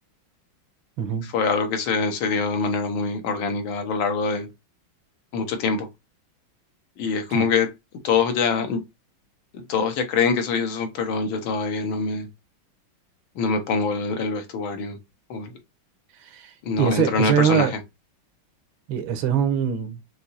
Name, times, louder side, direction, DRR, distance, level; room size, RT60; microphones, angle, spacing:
voice 1, 1.2-4.5 5.3-5.9 7.0-7.7 8.0-8.8 9.5-12.3 13.4-15.0 15.3-15.6 16.6-17.8, left 5 dB, 80° left, 1.7 m, -24 dB
voice 2, 16.2-17.7 18.9-20.0, right 8 dB, 80° right, 1.6 m, -23 dB
6.0 x 2.7 x 2.6 m
omnidirectional pair, 2.2 m